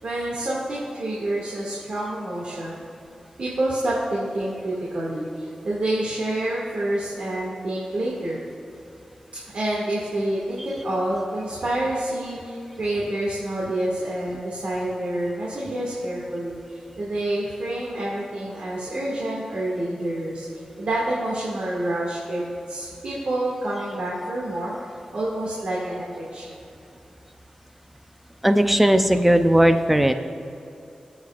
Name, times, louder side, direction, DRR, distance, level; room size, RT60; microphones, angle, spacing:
voice 1, 0.0-2.8 3.4-8.4 9.5-20.5 20.8-22.4 22.7-24.7 25.1-26.6, right 1 dB, 70° right, -6 dB, 2.2 m, -28 dB
voice 2, 28.4-30.1, right 1 dB, 5° right, 7 dB, 0.7 m, -17 dB
23.5 x 7.9 x 2.5 m, 2.7 s
wide cardioid pair, 85°, 2 cm